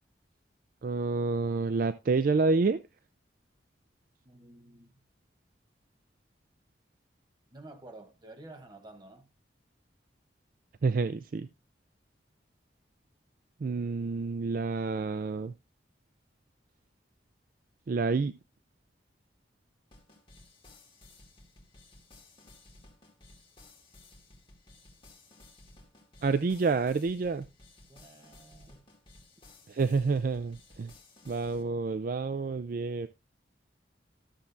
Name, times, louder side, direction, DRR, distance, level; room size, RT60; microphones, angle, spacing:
voice 1, 0.8-2.8 10.8-11.5 13.6-15.5 17.9-18.4 26.2-27.5 29.7-30.9 31.3-33.1, right 4 dB, 50° right, 0.4 m, -28 dB
voice 2, 4.2-4.9 7.5-9.3 27.9-28.9, right 2 dB, 25° right, 1.1 m, -51 dB
sound 1, 19.9-31.6, left 2 dB, 30° left, 2.2 m, -56 dB
13.0 x 7.2 x 2.6 m
head